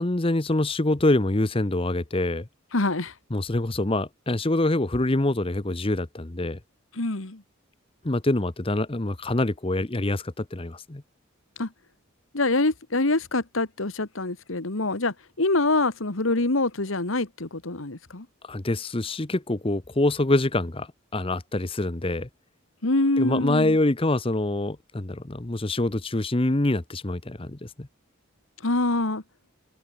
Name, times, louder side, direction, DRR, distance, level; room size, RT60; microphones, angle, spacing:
voice 1, 0.0-2.5 3.3-6.6 8.0-11.0 18.4-22.3 23.2-27.9, left 2 dB, 25° left, 1.0 m, -25 dB
voice 2, 2.7-3.1 7.0-7.4 11.6-11.7 12.3-18.3 22.8-23.8 28.6-29.2, left 2 dB, 80° left, 1.9 m, -25 dB
head